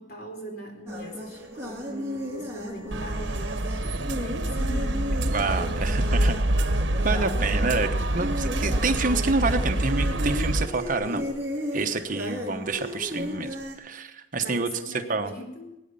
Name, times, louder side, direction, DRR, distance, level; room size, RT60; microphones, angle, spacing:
voice 1, 0.0-6.4 14.4-15.7, right 1 dB, 55° left, 2 dB, 4.1 m, -40 dB
sound 1, 0.9-13.7, left 1 dB, 15° right, 3.6 m, -35 dB
sound 2, 2.9-10.7, right 1 dB, 75° right, 1.1 m, -26 dB
voice 2, 5.3-6.3 7.0-11.2 11.7-14.7 15.1-15.3, right 3 dB, 45° right, 7 dB, 1.1 m, -28 dB
20.0 x 9.6 x 5.6 m, 0.95 s
head